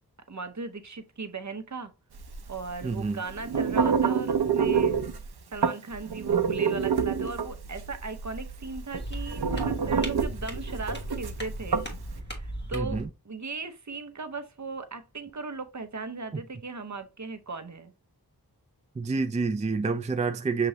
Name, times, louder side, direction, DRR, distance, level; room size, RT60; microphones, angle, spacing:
voice 1, 0.3-1.9 2.5-5.0 5.5-11.8 12.3-17.9, right 3 dB, 50° right, 0.7 m, -37 dB
sound 1, 2.2-12.1, right 6 dB, 85° right, 0.6 m, -28 dB
voice 2, 2.8-3.2 12.7-13.1 16.3-16.4 19.0-20.7, right 4 dB, 20° right, 0.3 m, -28 dB
sound 2, 9.0-13.1, equal, 30° left, 1.5 m, -37 dB
6.6 x 3.0 x 2.7 m
wide cardioid pair, 55°, 38 cm